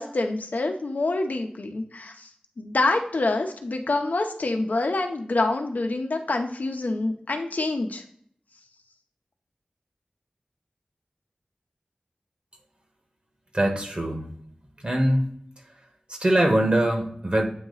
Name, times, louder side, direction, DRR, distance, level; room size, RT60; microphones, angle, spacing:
voice 1, 0.0-2.3 2.6-8.0, left 2 dB, 85° left, 4 dB, 0.8 m, -26 dB
voice 2, 13.5-14.3 14.8-15.2 16.1-17.5, right 1 dB, 40° right, 2 dB, 1.4 m, -22 dB
8.5 x 3.0 x 3.9 m, 0.65 s
wide cardioid pair, 60°, 3 cm